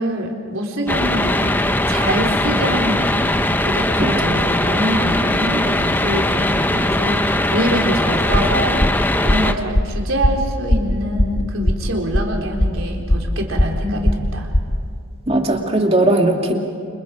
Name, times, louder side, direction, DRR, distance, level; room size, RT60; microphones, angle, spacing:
voice 1, 0.0-1.5 1.9-8.9 9.2-14.5, equal, 85° right, 1 dB, 3.9 m, -24 dB
sound 1, 0.9-9.5, left 1 dB, 10° left, 0.8 m, -19 dB
voice 2, 4.0-4.4 15.3-16.5, right 1 dB, 30° right, 2 dB, 2.5 m, -18 dB
sound 2, 8.3-14.9, left 1 dB, 45° left, 1.4 m, -19 dB
29.5 x 28.0 x 5.1 m, 2.3 s
head